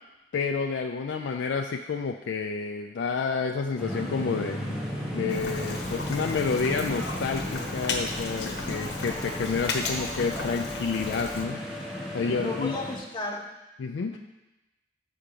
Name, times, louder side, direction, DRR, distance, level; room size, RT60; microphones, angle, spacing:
voice 1, 0.3-4.6 5.1-11.6 12.1-12.7 13.8-14.2, left 5 dB, 80° left, 3 dB, 0.4 m, -29 dB
sound 1, 3.8-13.0, equal, 5° right, 1.3 m, -34 dB
Rain, 5.3-11.4, left 3 dB, 60° left, 1.0 m, -35 dB
voice 2, 12.3-13.5 14.1-14.2, left 2 dB, 25° left, -2 dB, 1.1 m, -34 dB
5.8 x 5.0 x 6.7 m, 1.0 s
head